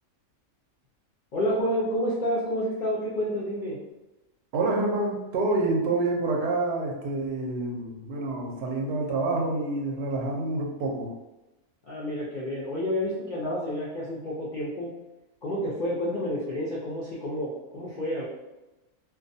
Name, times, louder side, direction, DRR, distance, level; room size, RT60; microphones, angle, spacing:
voice 1, 1.3-3.8 11.9-14.9 15.4-18.3, equal, 70° left, -8 dB, 0.4 m, -29 dB
voice 2, 4.5-11.1, right 2 dB, 60° right, -1 dB, 0.7 m, -27 dB
2.4 x 2.2 x 2.6 m, 1.0 s
omnidirectional pair, 1.5 m